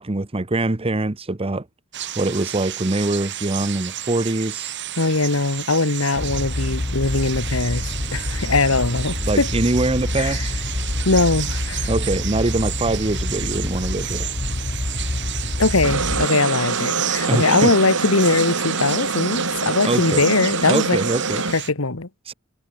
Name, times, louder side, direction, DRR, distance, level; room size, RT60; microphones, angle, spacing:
voice 1, 0.0-1.7 2.2-4.7 9.2-10.5 11.9-14.3 17.3-17.7 19.8-20.2 20.7-21.4 22.3-22.4, right 2 dB, 25° right, 1.0 m, -23 dB
sound 1, 1.9-21.7, right 12 dB, 60° right, 3.1 m, -32 dB
voice 2, 5.0-9.5 10.1-10.4 11.0-11.9 15.6-21.0 21.5-22.1, left 3 dB, 80° left, 1.8 m, -21 dB
sound 2, 6.1-16.3, left 2 dB, 30° left, 0.8 m, -27 dB
sound 3, 15.8-21.5, right 4 dB, 80° right, 2.6 m, -25 dB
head